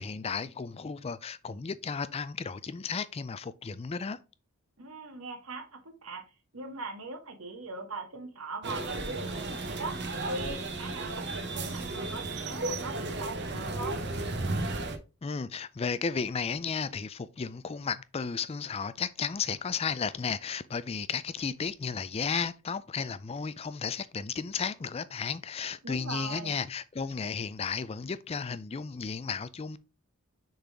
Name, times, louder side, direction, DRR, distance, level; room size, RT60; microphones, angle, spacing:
voice 1, 0.0-4.2 15.2-29.8, left 5 dB, 25° left, 0.4 m, -34 dB
voice 2, 4.8-6.2 6.5-10.0 10.3-14.0 25.8-26.6, right 3 dB, 75° right, 1.9 m, -40 dB
sound 1, 8.6-15.0, right 2 dB, 50° right, 1.0 m, -34 dB
6.6 x 4.0 x 4.7 m
head